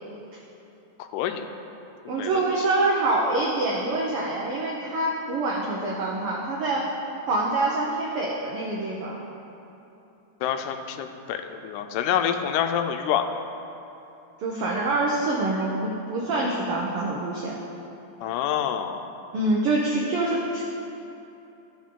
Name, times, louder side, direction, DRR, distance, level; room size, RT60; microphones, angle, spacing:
voice 1, 1.0-1.5 2.2-2.3 10.4-13.3 18.2-19.0, left 9 dB, 85° left, 7 dB, 2.1 m, -27 dB
voice 2, 2.1-6.9 7.3-9.2 14.4-17.6 19.3-20.6, right 2 dB, 85° right, -3 dB, 1.2 m, -25 dB
13.5 x 5.3 x 3.7 m, 2.9 s
omnidirectional pair, 3.6 m